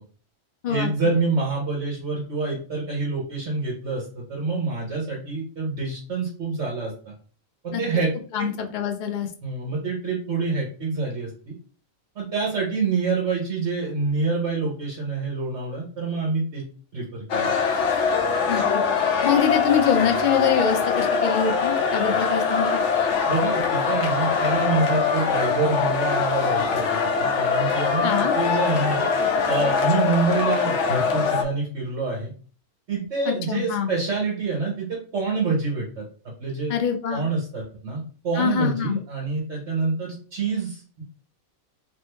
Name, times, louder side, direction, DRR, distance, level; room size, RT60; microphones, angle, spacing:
voice 1, 0.7-7.1 7.6-8.1 8.4-8.5 9.4-11.5 12.1-16.6 16.9-17.5 23.2-29.0 29.5-32.3 32.9-36.0 36.4-36.7 37.1-41.0, right 4 dB, 60° right, -3 dB, 1.2 m, -27 dB
voice 2, 8.3-9.3 18.5-18.6 19.2-22.7 28.0-28.3 33.3-33.9 36.7-37.2 38.4-39.0, left 8 dB, 85° left, 5 dB, 0.4 m, -24 dB
sound 1, 17.3-31.4, left 5 dB, 70° left, 0.9 m, -23 dB
3.0 x 2.6 x 3.3 m, 0.42 s
omnidirectional pair, 1.4 m